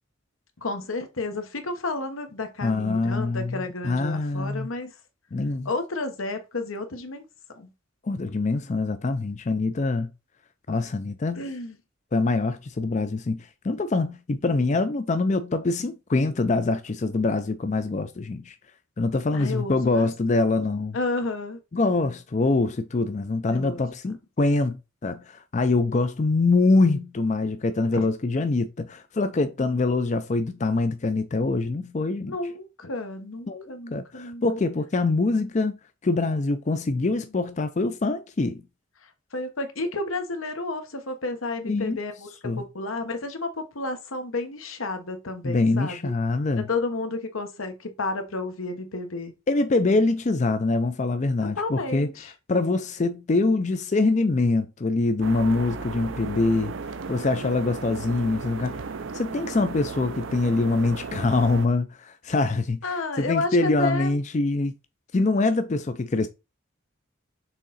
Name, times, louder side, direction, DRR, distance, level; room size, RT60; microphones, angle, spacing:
voice 1, 0.6-4.9 5.6-7.2 7.6-7.7 11.4-11.8 19.3-20.1 20.9-21.6 23.5-23.8 27.9-28.0 32.3-34.4 39.3-42.3 42.6-46.1 46.6-49.3 51.6-52.3 62.8-64.1, left 3 dB, 85° left, 1.2 m, -31 dB
voice 2, 2.6-3.6 3.8-4.7 5.3-5.7 8.0-10.1 10.7-11.4 12.1-18.6 19.0-21.0 21.7-32.4 33.5-33.6 33.9-35.8 36.0-38.6 41.7-42.0 42.4-42.6 45.4-46.7 49.5-52.1 52.5-56.7 57.1-58.8 59.1-62.8 63.2-64.7 65.1-66.3, left 3 dB, 35° left, 0.4 m, -24 dB
sound 1, 55.2-61.7, right 4 dB, 70° right, 0.5 m, -35 dB
6.4 x 3.7 x 4.1 m
head